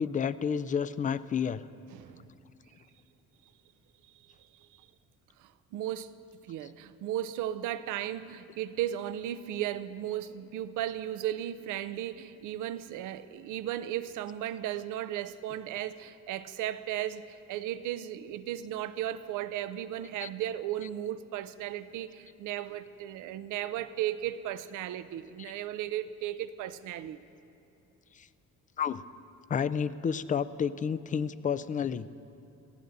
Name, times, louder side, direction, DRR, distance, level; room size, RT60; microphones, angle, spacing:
voice 1, 0.0-1.6 20.2-20.3 25.4-25.5 28.1-28.3 28.8-29.0 29.5-32.1, left 7 dB, 25° left, 0.3 m, -30 dB
voice 2, 1.9-2.3 5.4-6.1 6.5-27.2, right 12 dB, 90° right, 0.5 m, -35 dB
19.0 x 15.0 x 2.7 m
cardioid pair, 90°, 30 cm